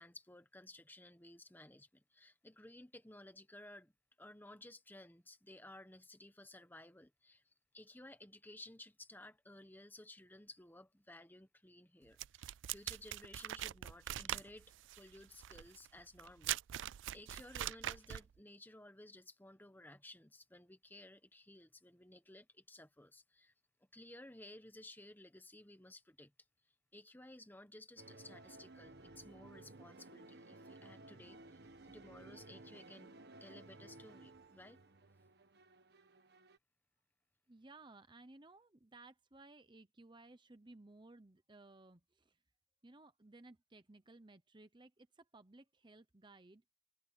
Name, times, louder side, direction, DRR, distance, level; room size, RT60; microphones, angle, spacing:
voice 1, 0.0-3.9 4.2-7.4 7.7-23.5 23.9-26.3 26.9-33.1 33.4-34.8, left 1 dB, 10° left, 1.3 m, -57 dB
sound 1, 12.2-18.3, right 12 dB, 85° right, 0.4 m, -42 dB
sound 2, 28.0-36.6, right 2 dB, 60° right, 1.4 m, -57 dB
voice 2, 37.5-42.4 42.8-46.6, right 2 dB, 25° right, 0.9 m, -59 dB
head